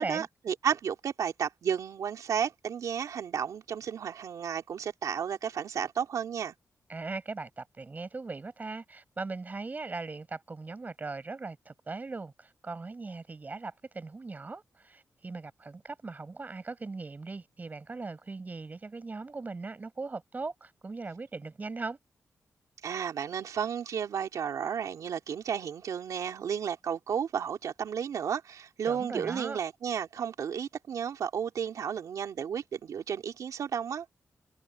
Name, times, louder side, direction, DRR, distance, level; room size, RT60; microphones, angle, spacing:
voice 1, 0.0-6.5 22.8-34.1, right 7 dB, 85° right, 3.0 m, -33 dB
voice 2, 6.9-22.0 28.8-29.6, right 3 dB, 30° right, 5.8 m, -39 dB
wide cardioid pair, 130°, 6 cm